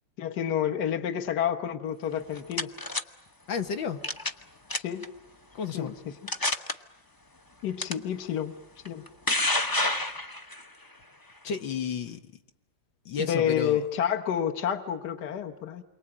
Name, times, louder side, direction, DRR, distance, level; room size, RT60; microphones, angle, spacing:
voice 1, 0.2-2.7 4.7-5.1 5.7-5.9 7.6-8.5 8.9-9.0 13.2-15.8, left 9 dB, 60° left, 5 dB, 1.8 m, -29 dB
sound 1, 2.1-3.0 4.0-4.4 4.7-5.0 5.7-5.8 6.3-6.7 7.8-7.9 8.8-10.6, left 2 dB, 20° left, 0.5 m, -28 dB
voice 2, 3.5-4.0 5.5-5.9 11.4-12.3 13.1-13.8, left 6 dB, 80° left, 6 dB, 2.1 m, -32 dB
29.0 x 23.5 x 8.8 m, 0.82 s
omnidirectional pair, 2.1 m